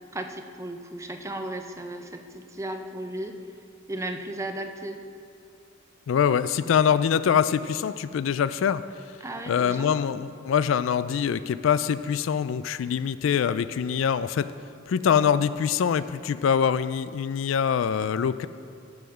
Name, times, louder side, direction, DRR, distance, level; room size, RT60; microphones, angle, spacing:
voice 1, 0.1-3.4 3.9-5.0 9.2-10.0, right 1 dB, 15° right, 5 dB, 0.6 m, -35 dB
voice 2, 6.1-8.8 9.5-14.5 14.9-18.5, left 7 dB, 70° left, 14 dB, 0.3 m, -24 dB
14.5 x 4.9 x 6.1 m, 2.4 s
head